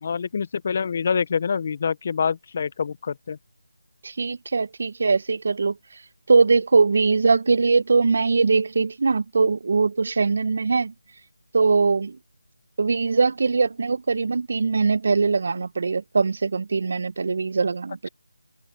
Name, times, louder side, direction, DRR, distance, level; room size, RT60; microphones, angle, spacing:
voice 1, 0.0-3.4, left 6 dB, 40° left, 0.8 m, -26 dB
voice 2, 4.0-5.8 6.3-10.9 11.5-12.2 12.8-18.1, right 4 dB, 50° right, 0.9 m, -21 dB
figure-of-eight pair, 165°, 0 cm